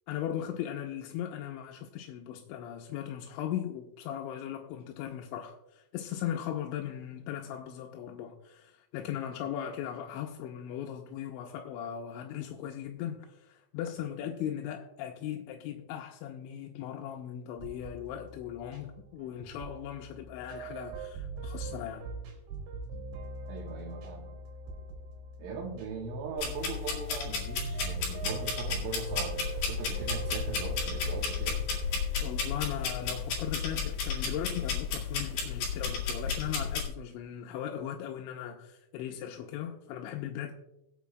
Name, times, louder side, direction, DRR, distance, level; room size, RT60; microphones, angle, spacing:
voice 1, 0.1-22.1 32.2-40.5, left 10 dB, 85° left, 3.0 m, -38 dB
sound 1, 17.6-34.3, right 3 dB, 70° right, 4.6 m, -42 dB
voice 2, 23.5-24.3 25.4-31.6, right 4 dB, 85° right, 3.9 m, -40 dB
sound 2, 26.4-36.8, left 5 dB, 50° left, 3.4 m, -33 dB
21.5 x 8.4 x 2.3 m
omnidirectional pair, 5.4 m